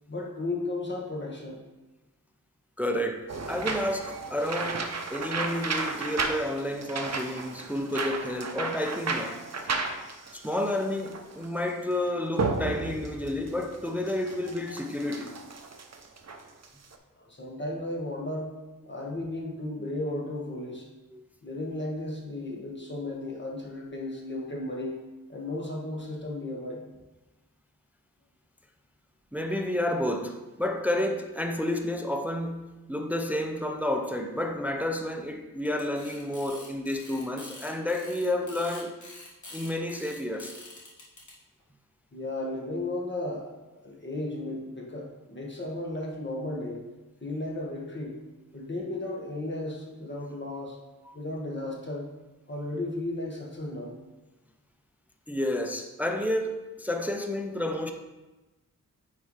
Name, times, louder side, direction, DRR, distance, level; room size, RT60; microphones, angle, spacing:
voice 1, 0.1-1.6 17.2-18.6 18.9-20.9 21.4-25.0 25.3-26.8 42.1-43.6 43.8-46.8 47.2-48.2 48.5-50.8 51.1-52.1 52.5-53.9, left 2 dB, 35° left, 1.5 m, -34 dB
voice 2, 2.8-9.4 10.3-15.3 21.1-21.2 29.3-39.0 39.5-40.6 51.1-51.2 55.3-57.9, left 1 dB, 5° right, 0.5 m, -30 dB
sound 1, 3.3-17.0, right 4 dB, 50° right, 0.7 m, -33 dB
sound 2, 35.7-41.3, left 2 dB, 60° left, 1.9 m, -46 dB
9.4 x 4.6 x 3.2 m
wide cardioid pair, 90°, 34 cm